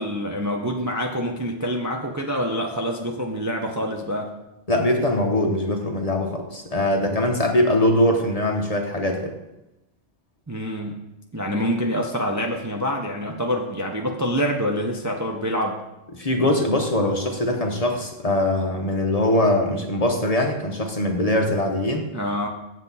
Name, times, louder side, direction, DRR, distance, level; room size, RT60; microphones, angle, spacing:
voice 1, 0.0-4.3 10.5-11.0 11.3-15.8 22.1-22.5, equal, 20° right, 1 dB, 0.6 m, -26 dB
voice 2, 4.7-9.3 16.1-22.0, left 1 dB, 35° left, 3 dB, 0.9 m, -22 dB
8.0 x 7.3 x 4.1 m, 0.95 s
omnidirectional pair, 1.2 m